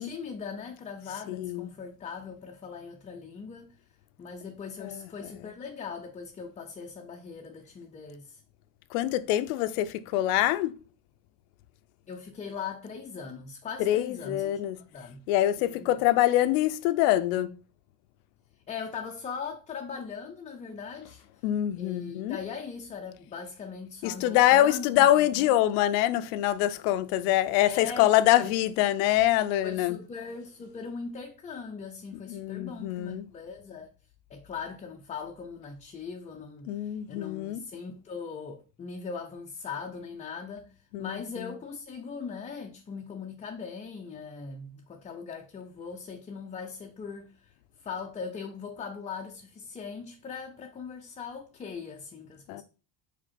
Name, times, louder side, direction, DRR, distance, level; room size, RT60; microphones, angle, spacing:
voice 1, 0.0-3.8 4.2-8.4 12.1-14.6 14.9-15.2 15.6-16.0 18.7-21.4 21.8-25.5 27.6-28.6 29.6-33.9 34.3-47.5 47.8-52.6, left 5 dB, 15° left, 0.5 m, -40 dB
voice 2, 1.3-1.7 4.8-5.0 8.9-10.7 13.8-14.8 15.3-17.5 21.4-22.4 24.0-30.0 32.3-33.2 36.7-37.6 40.9-41.5 52.5-52.6, left 13 dB, 80° left, 0.7 m, -25 dB
5.0 x 4.8 x 4.2 m
cardioid pair, 125°, 43 cm